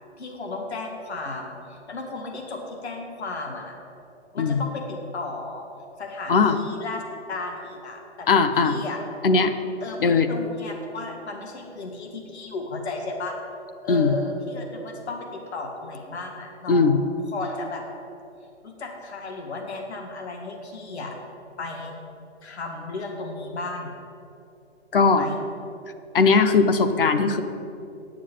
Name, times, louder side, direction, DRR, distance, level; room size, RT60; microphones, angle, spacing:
voice 1, 0.2-3.8 4.3-5.6 6.0-8.3 8.6-9.0 9.8-13.4 13.8-16.9 17.3-17.8 18.6-21.2 21.6-22.0 22.4-23.9 25.1-25.4, left 3 dB, 70° left, 2 dB, 2.0 m, -34 dB
voice 2, 8.3-8.8 9.2-9.5 10.0-10.3 13.9-14.1 16.7-17.0 24.9-25.3 26.1-27.4, left 4 dB, 50° left, 9 dB, 0.9 m, -19 dB
9.3 x 7.3 x 9.0 m, 2.7 s
hypercardioid pair, 170°, 34 cm